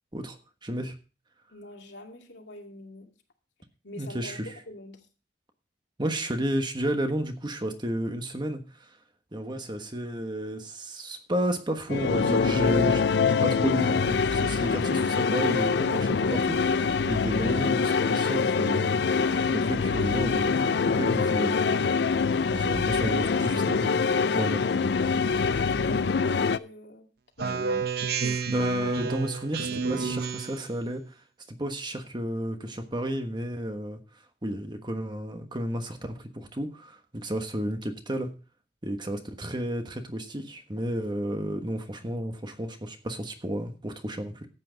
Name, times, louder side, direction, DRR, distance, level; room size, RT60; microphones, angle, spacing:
voice 1, 0.1-0.9 4.0-4.5 6.0-9.0 9.3-13.0 13.4-19.1 19.5-21.9 22.5-24.0 24.3-24.8 28.2-31.2 31.5-34.0 34.4-38.3 38.8-44.5, equal, 25° right, 6 dB, 1.3 m, -32 dB
voice 2, 1.5-3.1 3.8-5.0 14.5-14.8 23.0-23.6 25.3-27.1 27.4-27.7, left 2 dB, 85° left, 2 dB, 2.4 m, -45 dB
sound 1, 11.9-26.6, left 5 dB, 70° left, 0.5 m, -24 dB
Speech synthesizer, 27.4-30.7, right 5 dB, 60° right, 0.9 m, -30 dB
13.0 x 8.6 x 3.9 m, 0.34 s
head